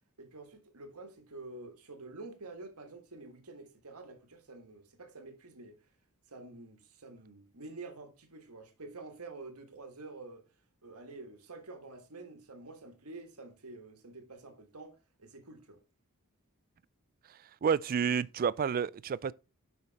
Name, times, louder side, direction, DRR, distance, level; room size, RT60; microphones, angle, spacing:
voice 1, 0.2-5.8 6.3-10.4 10.8-15.8, right 3 dB, 80° right, 1.6 m, -48 dB
voice 2, 17.6-19.3, right 7 dB, 40° right, 0.3 m, -29 dB
7.5 x 5.8 x 4.1 m
head